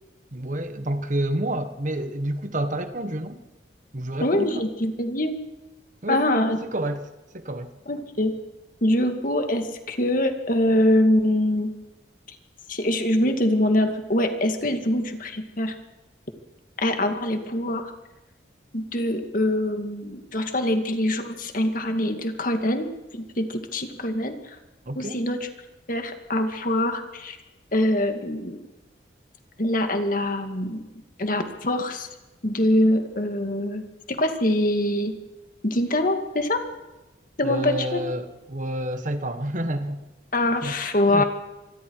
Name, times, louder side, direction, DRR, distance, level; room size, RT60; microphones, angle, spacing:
voice 1, 0.3-3.4 3.9-4.6 6.0-7.1 7.3-7.7 24.8-25.2 37.4-40.0 40.6-40.7 41.1-41.2, right 1 dB, 45° right, 1.5 m, -29 dB
voice 2, 4.2-5.4 6.1-6.6 7.9-8.3 8.8-11.7 12.7-15.8 16.8-17.9 18.7-24.6 25.0-25.5 25.9-27.4 27.7-28.6 29.6-30.9 31.2-32.1 32.4-35.1 35.6-36.6 37.4-38.0 40.3-41.2, left 1 dB, 50° left, 2.2 m, -24 dB
26.0 x 20.5 x 4.8 m
head